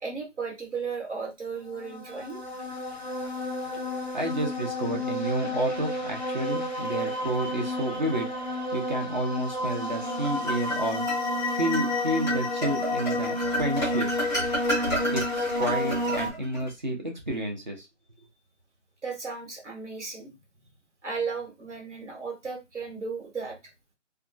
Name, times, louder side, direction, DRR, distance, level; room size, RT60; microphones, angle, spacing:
voice 1, 0.0-2.4 19.0-20.4 21.0-23.6, right 5 dB, 65° right, 1 dB, 1.4 m, -35 dB
sound 1, 1.7-16.3, left 1 dB, 40° left, 0.5 m, -30 dB
voice 2, 4.1-8.3 8.7-11.0 11.5-14.2 15.1-17.8, right 1 dB, 35° right, 1 dB, 0.7 m, -30 dB
sound 2, 9.9-11.2 11.7-11.9 12.3-16.7, right 1 dB, 10° right, 1.0 m, -32 dB
2.7 x 2.3 x 2.6 m, 0.23 s
figure-of-eight pair, 175°, 37 cm